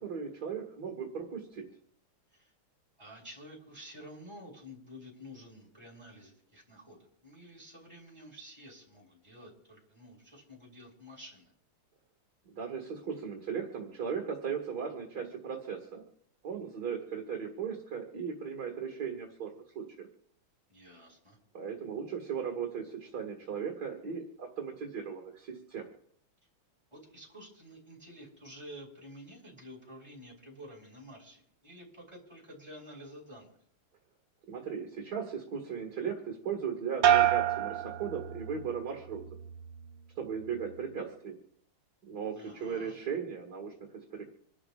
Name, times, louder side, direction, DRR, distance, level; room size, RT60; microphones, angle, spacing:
voice 1, 0.0-1.6 12.5-16.0 16.4-20.1 21.5-25.9 34.5-39.2 40.2-41.4 42.0-44.2, right 7 dB, 50° right, 1 dB, 2.4 m, -37 dB
voice 2, 3.0-11.5 20.7-21.4 26.9-33.5 42.3-42.9, equal, 10° right, -3 dB, 5.7 m, -50 dB
sound 1, 37.0-38.8 39.2-39.7, right 11 dB, 85° right, 1.7 m, -27 dB
27.5 x 13.0 x 2.5 m, 0.66 s
omnidirectional pair, 2.4 m